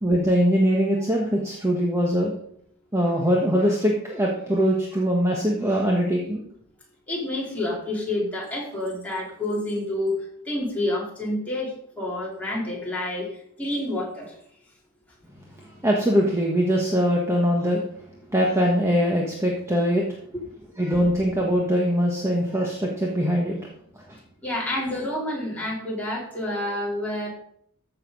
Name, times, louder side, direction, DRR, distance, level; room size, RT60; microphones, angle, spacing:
voice 1, 0.0-2.3 2.9-6.4 15.8-17.8 18.3-20.0 20.8-23.6 24.1-24.2, equal, 15° right, -1 dB, 1.4 m, -22 dB
voice 2, 7.1-10.1 10.4-13.3 13.6-14.4 20.3-20.4 24.4-27.3, left 1 dB, 5° left, -5 dB, 3.9 m, -28 dB
14.0 x 6.8 x 5.4 m, 0.68 s
head